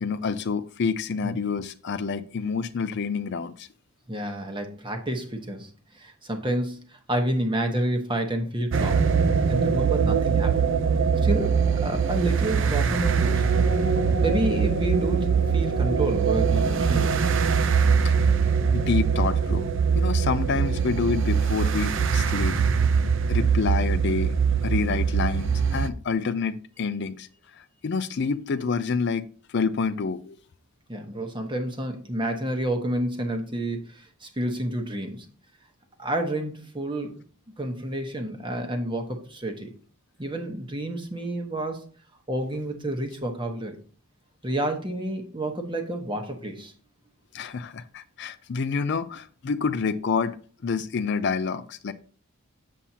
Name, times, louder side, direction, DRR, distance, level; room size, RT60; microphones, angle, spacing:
voice 1, 0.0-3.7 18.0-18.1 18.7-22.6 23.3-24.3 24.6-30.3 47.3-50.4 50.6-51.9, left 5 dB, 50° left, 0.4 m, -28 dB
voice 2, 4.1-9.0 9.5-10.7 11.2-13.5 14.2-17.2 30.9-35.3 36.0-37.2 37.6-39.7 40.2-41.8 42.3-43.8 44.4-46.7, right 1 dB, 20° right, 1.1 m, -29 dB
sound 1, 8.7-25.9, right 6 dB, 55° right, 0.5 m, -22 dB
7.3 x 7.3 x 2.8 m
head